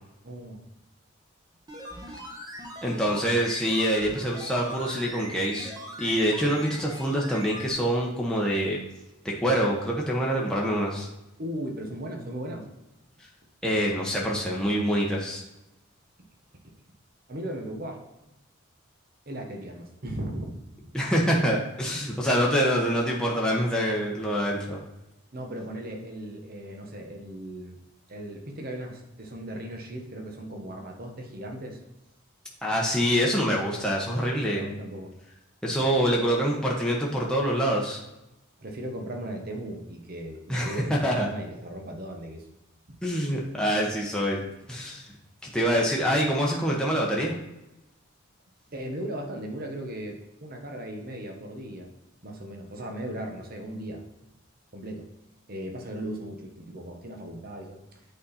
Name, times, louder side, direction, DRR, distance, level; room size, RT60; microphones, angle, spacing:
voice 1, 0.2-0.7 11.4-12.7 17.3-18.0 19.3-20.9 25.3-27.8 28.1-31.8 34.5-35.1 38.6-42.4 48.7-51.9 52.2-54.1 54.7-55.1 55.5-57.8, right 1 dB, 45° right, 2 dB, 1.1 m, -37 dB
sound 1, 1.6-7.7 8.0-8.1, equal, 20° right, 1.3 m, -40 dB
voice 2, 2.8-5.7 6.0-8.8 9.4-11.1 13.6-15.4 20.9-24.8 32.6-34.7 35.6-38.0 40.5-41.3 43.0-44.4 44.7-45.1 45.4-47.3, equal, 5° left, -3 dB, 1.0 m, -25 dB
8.4 x 4.2 x 4.2 m, 0.94 s
head